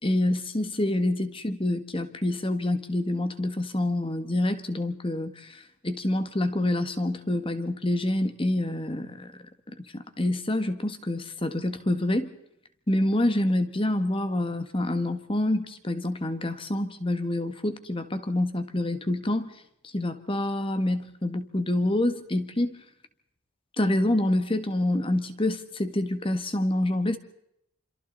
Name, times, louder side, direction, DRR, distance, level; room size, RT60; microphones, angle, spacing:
voice 1, 0.0-9.3 9.8-12.3 12.9-19.5 19.8-22.8 23.8-27.2, left 1 dB, 25° left, 9 dB, 1.6 m, -27 dB
27.0 x 27.0 x 4.1 m, 0.78 s
head